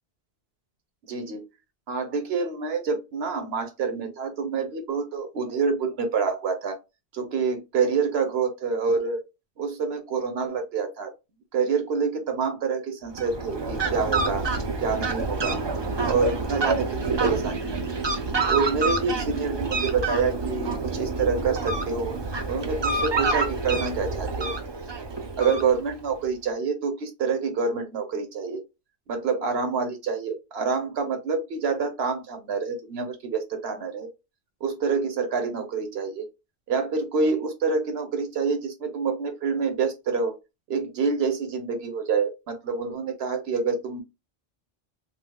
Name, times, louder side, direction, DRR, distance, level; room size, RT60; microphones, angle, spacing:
voice 1, 1.1-1.5 1.9-6.8 7.1-9.2 9.6-11.1 11.5-14.5 14.8-15.6 16.0-17.8 18.5-22.1 22.5-24.6 25.4-28.6 29.1-34.1 34.6-36.3 36.7-40.3 40.7-44.0, right 5 dB, 70° right, 1.1 m, -27 dB
Fowl, 13.1-26.1, right 3 dB, 35° right, 0.5 m, -28 dB
3.3 x 2.9 x 2.2 m
omnidirectional pair, 1.1 m